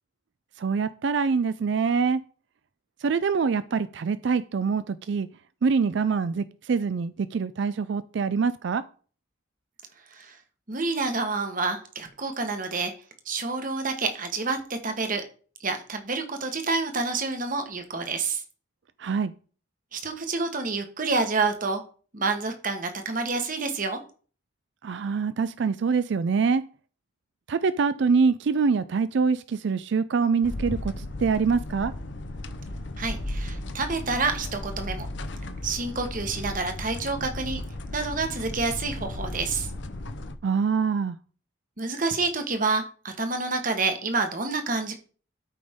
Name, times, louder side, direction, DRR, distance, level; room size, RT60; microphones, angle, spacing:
voice 1, 0.6-2.2 3.0-5.3 5.6-8.8 19.0-19.3 24.8-26.6 27.5-31.9 40.4-41.2, right 5 dB, 60° right, 0.4 m, -25 dB
voice 2, 10.7-12.9 13.2-15.2 15.6-18.4 19.9-21.8 22.1-24.0 33.0-35.1 35.6-37.6 37.9-39.7 41.8-45.0, right 3 dB, 40° right, 1.3 m, -28 dB
sound 1, 30.4-40.4, left 1 dB, 60° left, 0.7 m, -35 dB
12.5 x 5.1 x 3.6 m
head